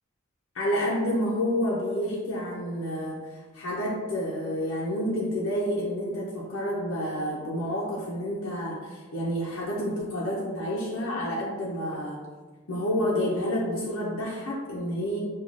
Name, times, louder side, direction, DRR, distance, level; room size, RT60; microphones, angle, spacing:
voice 1, 0.5-3.2 3.5-12.2 12.7-15.2, equal, 80° left, -5 dB, 0.5 m, -29 dB
4.7 x 2.3 x 2.6 m, 1.3 s
head